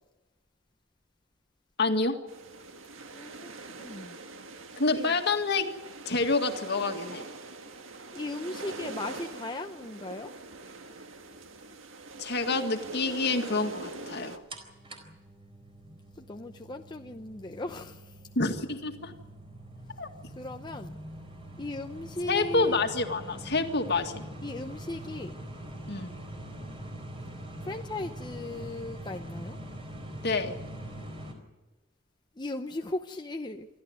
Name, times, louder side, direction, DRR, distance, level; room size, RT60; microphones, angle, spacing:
voice 1, 1.8-2.2 4.8-5.7 6.1-7.2 12.2-14.4 18.4-19.1 20.0-20.1 22.3-24.2 25.9-26.1 30.2-30.6, left 3 dB, 55° left, 5 dB, 2.0 m, -28 dB
sound 1, 2.3-14.4, right 3 dB, 75° right, 1.8 m, -43 dB
voice 2, 3.1-4.2 4.9-5.2 8.1-10.3 16.2-18.2 20.4-21.0 21.6-22.8 24.4-25.4 27.6-29.6 32.4-33.7, left 2 dB, 20° left, 5 dB, 0.8 m, -37 dB
sound 2, 14.5-31.3, right 1 dB, 25° right, 4.2 m, -43 dB
27.5 x 13.0 x 9.6 m, 1.2 s
head